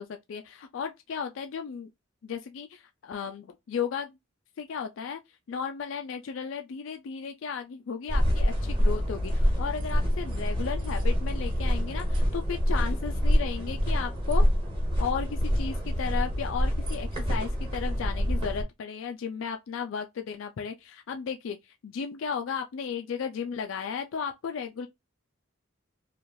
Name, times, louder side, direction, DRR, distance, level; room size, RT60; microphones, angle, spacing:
voice 1, 0.0-1.9 2.2-4.2 4.6-5.2 5.5-14.4 15.0-24.9, left 6 dB, 70° left, 0.3 m, -35 dB
sound 1, 8.1-18.6, equal, 25° right, 1.1 m, -26 dB
3.0 x 2.4 x 2.6 m
head